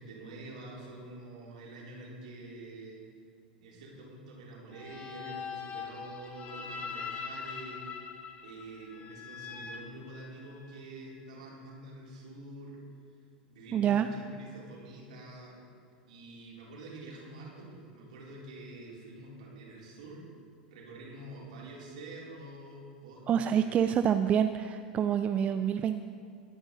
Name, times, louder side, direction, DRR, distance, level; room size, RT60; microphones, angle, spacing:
voice 1, 0.0-3.0 3.6-7.8 8.4-12.8 13.5-15.6 16.1-20.2 20.7-23.9, right 2 dB, 60° right, -4 dB, 3.9 m, -47 dB
sound 1, 4.7-10.7, left 6 dB, 25° left, 1.3 m, -42 dB
voice 2, 13.7-14.1 23.3-26.0, right 9 dB, 25° right, 9 dB, 0.4 m, -27 dB
23.0 x 9.7 x 4.0 m, 2.3 s
figure-of-eight pair, 85°, 5 cm